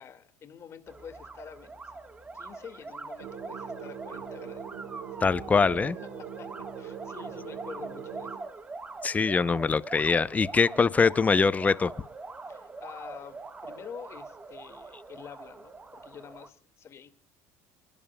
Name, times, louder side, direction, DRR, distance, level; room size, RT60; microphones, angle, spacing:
voice 1, 0.0-1.9 2.3-5.9 6.2-6.5 6.8-8.4 12.5-13.4 13.6-17.1, left 8 dB, 40° left, 2.0 m, -47 dB
sound 1, 0.9-16.5, right 3 dB, 15° right, 1.3 m, -43 dB
sound 2, 3.2-8.4, right 8 dB, 60° right, 4.2 m, -42 dB
voice 2, 5.2-6.0 9.0-11.9, left 5 dB, 20° left, 0.6 m, -23 dB
28.0 x 11.0 x 2.2 m
supercardioid pair, 105°, 7 cm